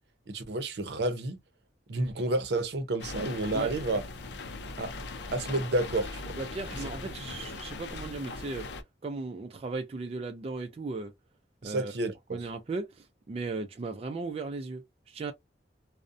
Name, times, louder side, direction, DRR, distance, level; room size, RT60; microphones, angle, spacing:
voice 1, 0.3-1.4 1.9-4.0 4.8-4.9 5.3-6.3 11.6-12.5, right 2 dB, 75° right, 0.6 m, -30 dB
sound 1, 3.0-8.8, left 3 dB, 75° left, 0.4 m, -40 dB
voice 2, 6.4-8.7 9.0-11.1 11.6-11.9 12.3-15.3, right 3 dB, 35° right, 0.3 m, -36 dB
2.5 x 2.0 x 2.4 m
head